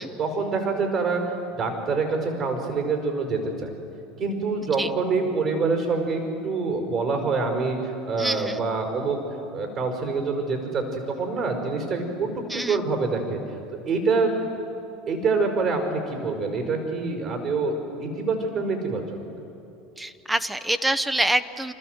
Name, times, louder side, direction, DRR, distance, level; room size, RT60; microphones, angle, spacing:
voice 1, 0.2-3.7 4.2-9.2 9.5-12.3 12.5-13.4 13.9-14.4 15.1-17.7 18.0-19.0, right 4 dB, 50° right, 3 dB, 5.0 m, -26 dB
voice 2, 8.2-8.6 12.5-12.8 20.0-21.7, right 1 dB, 10° right, 12 dB, 0.8 m, -26 dB
28.5 x 13.5 x 8.0 m, 2.8 s
hypercardioid pair, 90°, 0 cm